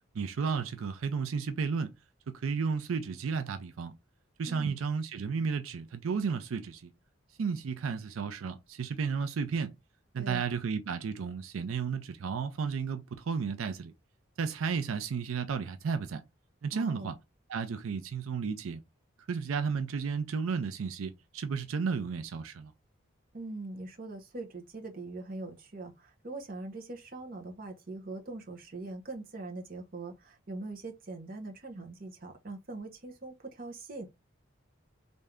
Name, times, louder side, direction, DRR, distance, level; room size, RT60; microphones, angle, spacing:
voice 1, 0.1-1.9 2.3-3.9 4.4-6.9 7.4-9.7 10.1-13.9 14.4-16.2 16.6-17.2 17.5-18.8 19.3-22.7, right 5 dB, 85° right, 0.4 m, -33 dB
voice 2, 16.7-17.1 23.3-34.1, right 2 dB, 45° right, 0.8 m, -42 dB
3.2 x 2.6 x 3.5 m
head